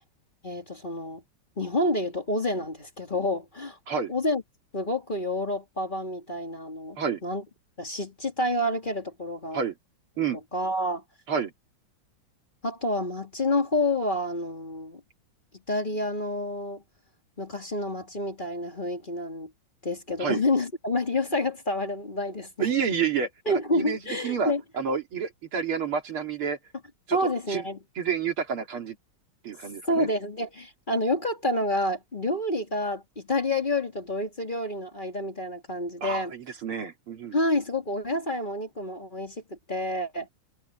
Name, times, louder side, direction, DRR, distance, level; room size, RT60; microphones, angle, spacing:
voice 1, 0.4-1.2 1.6-3.8 4.1-4.4 4.7-7.4 7.8-9.6 10.5-11.0 12.6-15.0 15.7-16.8 17.4-19.5 19.8-22.7 23.5-24.6 27.1-27.8 29.8-36.3 37.3-40.3, left 1 dB, 25° left, 2.5 m, -28 dB
voice 2, 22.6-26.6 27.1-27.2 27.5-27.6 28.0-29.0 29.4-30.1 36.0-37.4, right 6 dB, 85° right, 3.5 m, -29 dB
omnidirectional pair, 2.3 m